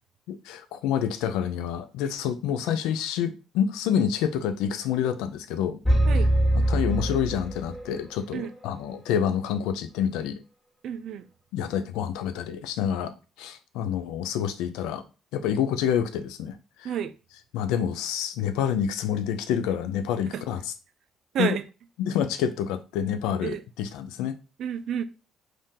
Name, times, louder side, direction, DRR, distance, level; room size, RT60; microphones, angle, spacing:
voice 1, 0.3-5.8 6.5-10.4 11.5-15.0 15.3-17.0 17.5-20.7 21.4-21.6 22.0-24.4, left 8 dB, 85° left, 0.4 m, -28 dB
sound 1, 5.8-8.0, right 1 dB, 10° left, 1.3 m, -23 dB
voice 2, 10.8-11.2 16.8-17.1 20.3-20.4 21.3-21.6 23.4-23.6 24.6-25.0, right 9 dB, 65° right, 0.4 m, -29 dB
2.7 x 2.5 x 3.6 m
supercardioid pair, 75°, 0 cm